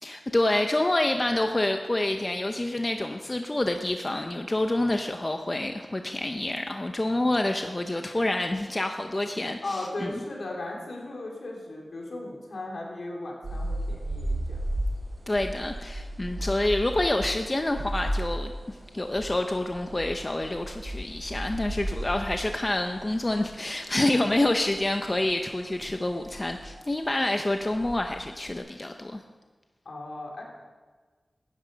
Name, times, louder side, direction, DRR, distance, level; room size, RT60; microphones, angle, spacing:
voice 1, 0.0-10.2 15.3-29.2, left 1 dB, 35° left, 5 dB, 0.8 m, -27 dB
voice 2, 9.6-14.6 29.8-30.4, left 2 dB, 75° left, -1 dB, 3.1 m, -36 dB
sound 1, 13.4-28.6, right 1 dB, 65° right, 3.4 m, -35 dB
12.5 x 9.9 x 5.3 m, 1.4 s
cardioid pair, 40°, 0 cm